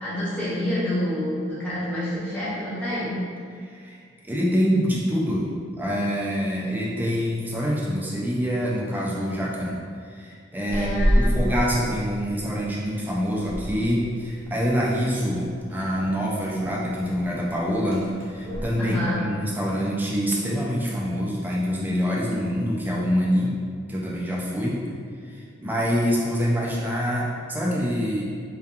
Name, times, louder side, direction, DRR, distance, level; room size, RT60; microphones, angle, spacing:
voice 1, 0.0-3.1 10.7-11.4 18.8-19.2, left 1 dB, 10° left, -11 dB, 0.8 m, -28 dB
voice 2, 3.6-23.5 23.9-24.8 25.2-28.2, equal, 10° right, -4 dB, 0.3 m, -26 dB
sound 1, 10.7-18.7, equal, 85° right, 0.7 m, -29 dB
2.6 x 2.3 x 2.3 m, 2.2 s
head